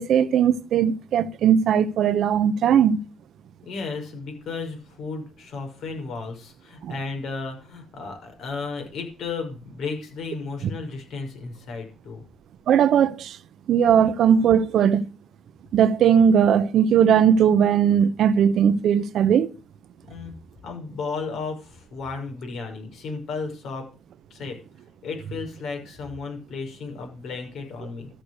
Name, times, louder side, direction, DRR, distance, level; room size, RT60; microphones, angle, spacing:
voice 1, 0.0-3.0 6.8-6.9 12.7-13.4 13.7-15.0 15.7-19.5, right 8 dB, 70° right, 0.9 m, -19 dB
voice 2, 3.6-12.2 20.1-20.3 20.6-23.9 24.3-24.6 25.0-28.1, left 4 dB, 70° left, 6.1 m, -34 dB
13.5 x 6.5 x 8.1 m
cardioid pair, 90°, 0 cm